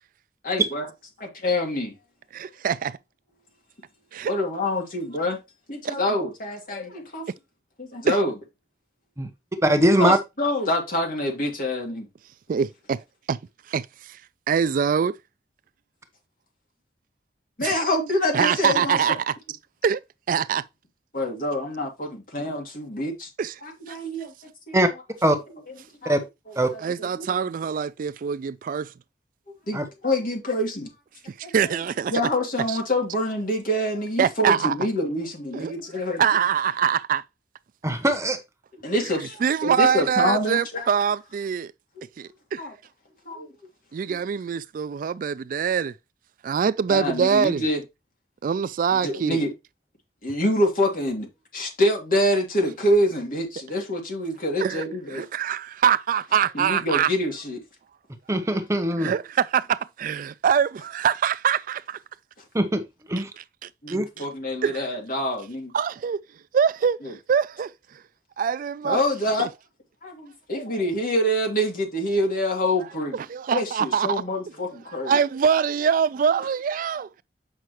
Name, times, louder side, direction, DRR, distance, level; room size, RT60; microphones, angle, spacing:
voice 1, 0.4-0.9 1.4-1.9 4.3-5.4 5.7-7.2 7.8-8.3 10.0-12.1 17.6-19.2 21.1-23.3 23.6-24.3 26.0-26.1 26.7-27.4 29.7-30.9 31.4-31.8 32.1-36.2 38.8-40.9 42.0-42.1 42.6-42.7 43.3-43.5 44.1-44.2 46.9-47.8 48.9-49.5 50.2-51.3 51.5-55.2 56.5-57.6 63.8-65.7 67.0-67.1 68.8-69.5 70.0-73.2 73.5-75.2, left 1 dB, 55° left, 2.7 m, -26 dB
voice 2, 2.3-3.0 4.1-4.3 5.8-5.9 8.1-8.2 12.5-13.0 13.3-13.4 13.7-13.9 14.5-15.1 17.6-17.8 18.3-19.3 19.8-20.0 20.3-20.6 23.4-23.5 23.9-24.0 26.8-28.9 31.4-32.1 32.7-32.8 34.2-34.7 35.5-35.7 36.2-37.2 39.4-41.7 42.2-42.6 43.9-45.9 46.4-47.6 48.4-49.4 54.6-54.8 55.1-57.1 59.0-62.0 63.4-64.3 64.6-64.9 65.7-66.2 66.5-67.7 68.4-69.0 69.4-69.5 73.1-74.2 75.0-77.2, right 7 dB, 50° right, 0.3 m, -24 dB
voice 3, 9.6-10.2 24.7-24.9 25.2-25.4 26.1-26.2 26.6-26.7 29.7-29.8 37.8-38.4 58.3-59.1 62.5-62.8 63.1-63.3 63.9-64.1, right 1 dB, 15° right, 0.8 m, -21 dB
7.8 x 5.7 x 3.0 m
head